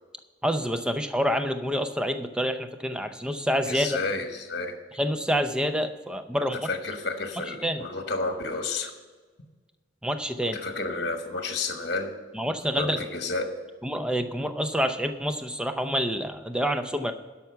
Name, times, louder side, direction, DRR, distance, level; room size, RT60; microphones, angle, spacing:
voice 1, 0.4-4.0 5.0-6.7 7.6-7.8 10.0-10.6 12.3-13.0 13.8-17.1, equal, 5° right, 8 dB, 0.6 m, -27 dB
voice 2, 3.7-4.7 6.5-8.9 10.5-12.1 12.7-13.5, left 3 dB, 55° left, 5 dB, 1.3 m, -31 dB
12.0 x 5.8 x 6.7 m, 1.4 s
head